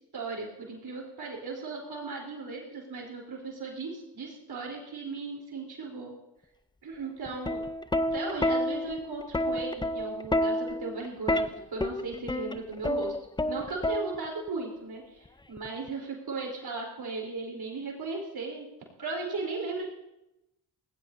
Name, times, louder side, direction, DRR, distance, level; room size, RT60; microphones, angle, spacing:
voice 1, 0.1-6.1 6.8-7.6 8.1-13.2 13.5-18.7 19.0-19.9, right 3 dB, 65° right, -1 dB, 3.9 m, -37 dB
Plucked string instrument, 7.3-14.5 15.6-15.9, left 1 dB, 10° left, 0.6 m, -29 dB
17.5 x 17.0 x 2.7 m, 0.91 s
cardioid pair, 70°, 41 cm